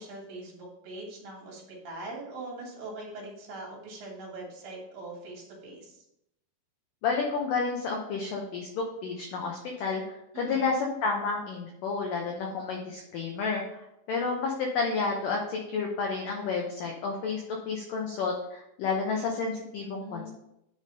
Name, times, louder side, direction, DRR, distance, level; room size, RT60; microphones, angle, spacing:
voice 1, 0.0-6.0 10.3-10.7 19.8-20.3, right 2 dB, 65° right, -3 dB, 3.0 m, -42 dB
voice 2, 7.0-13.8 14.1-20.3, left 4 dB, 85° left, 0 dB, 1.8 m, -31 dB
9.7 x 3.3 x 5.2 m, 0.83 s
omnidirectional pair, 5.1 m